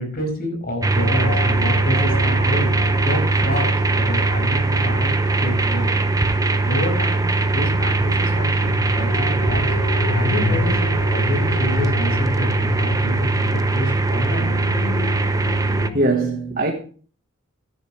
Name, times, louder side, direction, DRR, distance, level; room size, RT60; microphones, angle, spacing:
voice 1, 0.0-2.7 3.0-5.9 6.6-9.7 10.1-14.5, equal, 45° left, 5.7 m, -28 dB
sound 1, 0.8-15.9, right 3 dB, 15° right, 0.8 m, -20 dB
In the Deep Blue Sea, 1.0-16.0, left 4 dB, 85° left, 0.8 m, -31 dB
voice 2, 15.9-16.7, right 2 dB, 45° right, 1.3 m, -21 dB
13.5 x 10.5 x 3.2 m
head